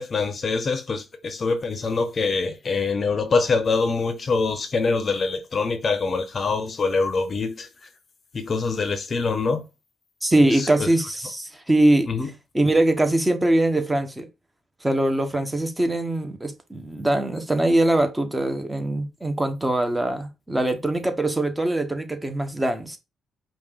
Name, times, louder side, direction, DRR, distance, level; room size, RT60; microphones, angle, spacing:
voice 1, 0.0-7.7 8.3-9.6 10.5-10.9 12.1-12.3, left 4 dB, 40° left, 0.8 m, -24 dB
voice 2, 10.2-12.1 12.5-14.3 14.8-23.0, right 1 dB, 10° right, 1.2 m, -22 dB
5.2 x 2.5 x 3.7 m
cardioid pair, 90°, 0 cm